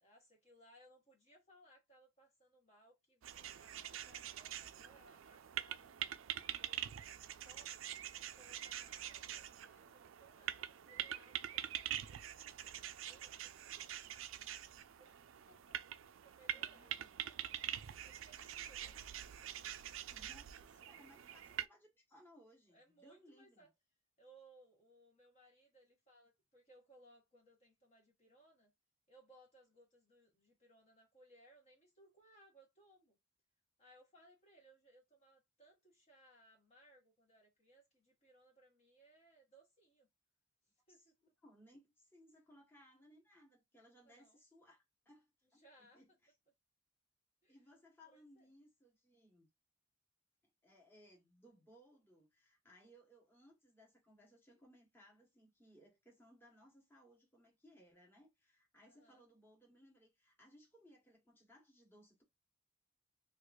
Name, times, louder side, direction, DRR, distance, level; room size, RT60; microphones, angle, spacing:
voice 1, 0.0-5.9 6.4-7.9 8.2-14.0 15.0-15.8 16.2-17.5 17.9-19.1 19.4-19.5 22.7-23.7 24.2-28.7 29.1-33.2 33.8-40.1 40.9-41.1 44.0-44.4 45.5-46.0 47.4-47.6 48.1-48.5 58.8-59.2, right 1 dB, 35° left, 1.1 m, -66 dB
sound 1, 3.2-21.7, right 11 dB, 75° right, 0.4 m, -45 dB
voice 2, 16.5-17.2 18.8-19.0 20.1-23.7 40.9-46.3 47.5-49.5 50.6-62.2, equal, 10° left, 1.2 m, -65 dB
4.6 x 2.4 x 2.3 m
head